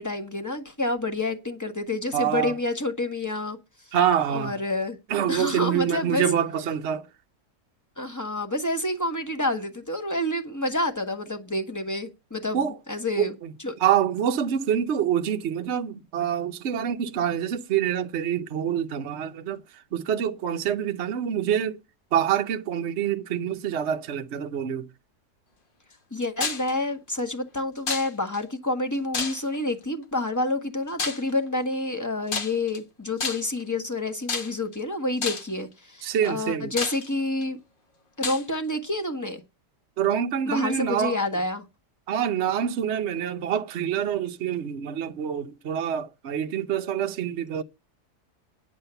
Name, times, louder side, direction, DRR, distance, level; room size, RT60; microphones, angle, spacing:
voice 1, 0.0-3.6 4.3-5.0 5.3-6.2 8.0-12.6 12.9-13.3 13.6-13.7 26.1-37.6 38.2-39.4 40.4-41.6, left 2 dB, 10° left, 1.2 m, -28 dB
voice 2, 2.1-2.6 3.9-4.6 5.1-7.1 12.5-12.8 13.2-13.5 13.8-19.6 19.9-21.8 22.1-24.9 36.0-36.7 40.0-41.2 42.1-47.6, right 9 dB, 55° right, 0.8 m, -26 dB
sound 1, 26.4-26.7 27.9-28.4 29.1-29.7 31.0-31.3 32.3-32.8 33.2-33.6 34.3-34.7 35.2-35.6 36.2-36.3 36.8-37.4 38.2-38.4, left 4 dB, 35° left, 1.1 m, -30 dB
9.7 x 7.4 x 6.8 m
omnidirectional pair, 1.8 m